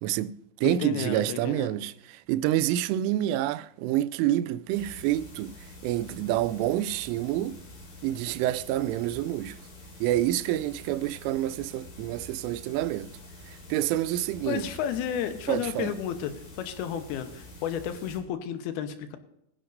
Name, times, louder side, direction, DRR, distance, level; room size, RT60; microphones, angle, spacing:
voice 1, 0.0-5.5 5.8-7.6 8.0-9.6 10.0-13.1 13.5-14.7 15.5-15.9, right 13 dB, 85° right, 3.0 m, -28 dB
voice 2, 0.6-1.8 14.4-16.3 16.6-19.2, left 9 dB, 75° left, 2.3 m, -32 dB
sound 1, 4.7-18.2, left 1 dB, 50° left, 3.7 m, -47 dB
21.5 x 10.0 x 2.6 m
omnidirectional pair, 5.6 m